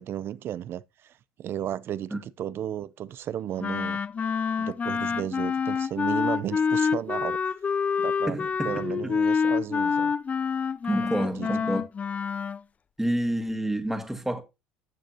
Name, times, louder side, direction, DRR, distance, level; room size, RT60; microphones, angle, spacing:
voice 1, 0.0-4.0 4.6-7.5 8.0-8.4 8.6-10.1 11.2-11.5, right 11 dB, 55° right, 0.6 m, -34 dB
Wind instrument woodwind instrument, 3.6-12.6, left 6 dB, 30° left, 0.5 m, -27 dB
voice 2, 8.3-9.2 10.8-11.8 13.0-14.4, right 1 dB, 5° right, 2.1 m, -29 dB
12.5 x 6.6 x 2.9 m
hypercardioid pair, 75°, 5 cm